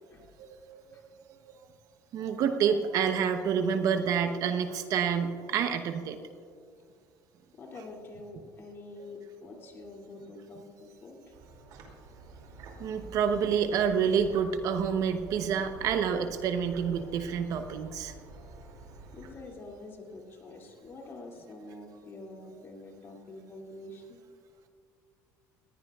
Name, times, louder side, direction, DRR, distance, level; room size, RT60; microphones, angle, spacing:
voice 1, 0.4-1.0 1.4-1.6 2.1-6.2 12.8-18.1 18.5-18.6, right 7 dB, 60° right, 7 dB, 0.9 m, -28 dB
voice 2, 7.5-11.2 19.1-24.2, left 2 dB, 35° left, 0 dB, 2.5 m, -46 dB
sound 1, 11.3-19.3, right 2 dB, 75° right, 2.6 m, -48 dB
20.0 x 15.5 x 2.4 m, 2.2 s
cardioid pair, 130°, 7 cm